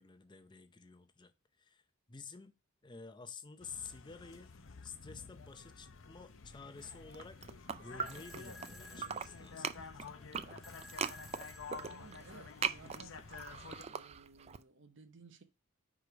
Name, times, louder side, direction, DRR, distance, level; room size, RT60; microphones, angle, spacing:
voice 1, 0.0-1.3 1.6-1.8 2.1-2.5 2.8-4.5 4.8-7.4 7.8-10.1, left 5 dB, 20° left, 0.6 m, -51 dB
sound 1, 3.6-13.8, left 5 dB, 70° left, 0.7 m, -51 dB
sound 2, 7.0-8.7 9.0-14.6, right 6 dB, 30° right, 0.3 m, -40 dB
sound 3, 8.1-13.1, left 1 dB, ahead, 0.9 m, -57 dB
voice 2, 11.7-13.5 13.8-15.4, right 4 dB, 60° right, 0.7 m, -58 dB
5.0 x 4.9 x 4.8 m
head